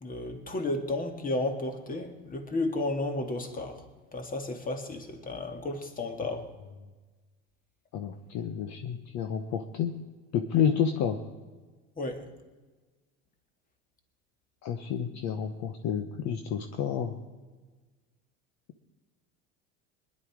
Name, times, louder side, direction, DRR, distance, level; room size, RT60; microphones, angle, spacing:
voice 1, 0.0-3.8 4.1-6.5 12.0-12.3, left 2 dB, 25° left, 2.0 m, -33 dB
voice 2, 7.9-9.9 10.3-11.2 14.6-17.1, left 8 dB, 50° left, 1.2 m, -30 dB
20.0 x 11.0 x 4.8 m
supercardioid pair, 105°, 35 cm